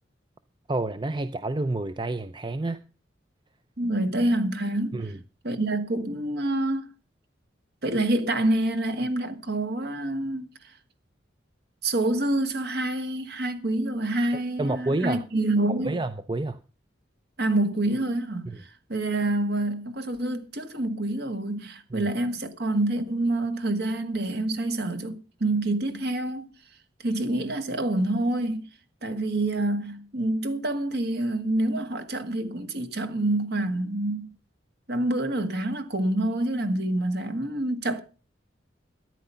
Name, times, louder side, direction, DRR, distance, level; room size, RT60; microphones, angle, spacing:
voice 1, 0.7-2.8 4.9-5.2 14.6-15.3 15.7-16.6 18.5-18.6 21.9-22.1, right 2 dB, 25° right, 0.5 m, -29 dB
voice 2, 3.8-5.1 5.4-6.9 7.8-10.5 11.8-16.0 17.4-18.5 18.9-26.5 27.0-28.6 29.0-34.3 34.9-38.0, right 1 dB, 55° right, 1.9 m, -27 dB
13.5 x 10.0 x 5.6 m
head